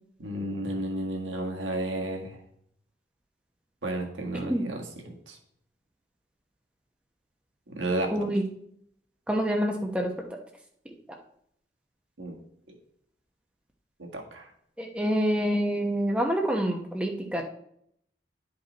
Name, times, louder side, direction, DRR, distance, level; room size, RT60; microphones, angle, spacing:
voice 1, 0.2-2.4 3.8-5.4 7.7-8.1 12.2-12.4 14.0-14.5, right 1 dB, 85° right, 1 dB, 1.7 m, -32 dB
voice 2, 8.1-8.4 9.3-10.1 14.8-17.4, equal, 5° right, 1 dB, 0.9 m, -26 dB
10.0 x 5.3 x 4.1 m, 0.69 s
head